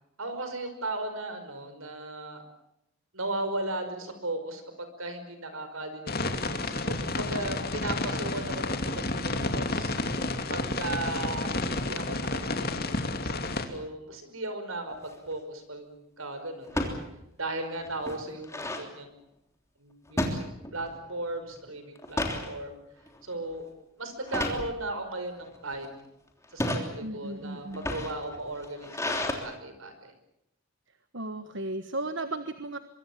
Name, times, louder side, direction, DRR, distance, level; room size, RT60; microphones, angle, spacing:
voice 1, 0.2-2.4 3.1-9.9 10.5-16.8 17.4-18.5 18.8-19.1 19.8-20.4 20.7-22.8 23.2-23.7 24.0-26.1 26.5-30.1, right 2 dB, 75° right, 8 dB, 5.4 m, -36 dB
sound 1, 6.1-13.6, left 2 dB, 45° left, 2.6 m, -30 dB
sound 2, 14.9-15.3 16.7-17.0 17.5-17.6 17.8-18.9 20.2-21.0 21.3-21.6 22.0-22.5 23.1-23.3 24.3-24.7 25.4-25.9 26.4-26.9 27.6-29.3, left 1 dB, 15° left, 3.2 m, -31 dB
voice 2, 27.0-27.9 31.1-32.8, right 2 dB, 55° right, 10 dB, 1.3 m, -35 dB
24.5 x 24.0 x 7.3 m, 0.83 s
head